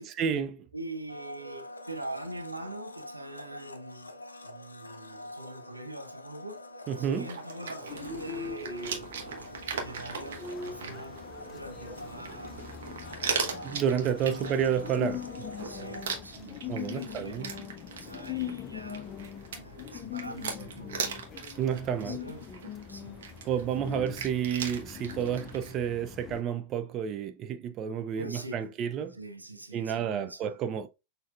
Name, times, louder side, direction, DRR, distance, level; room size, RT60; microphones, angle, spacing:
voice 1, 0.0-0.6 6.9-7.3 13.6-15.3 16.7-17.5 21.6-22.2 23.4-29.2 29.7-30.9, right 8 dB, 35° right, 0.4 m, -30 dB
voice 2, 0.7-4.2 4.4-6.6 7.0-9.1 9.8-11.2 11.5-12.7 12.9-14.7 15.6-19.1 19.5-21.2 21.9-22.6 22.9-23.2 28.2-28.8 29.1-30.5, right 1 dB, 85° right, 0.6 m, -43 dB
Domestic sounds home sounds, 1.1-16.2, left 1 dB, 80° left, 0.5 m, -46 dB
sound 1, 6.9-25.7, right 6 dB, 60° right, 0.9 m, -40 dB
sound 2, 7.9-26.4, left 8 dB, 30° left, 0.4 m, -42 dB
6.2 x 2.7 x 2.3 m
figure-of-eight pair, 90°, 0 cm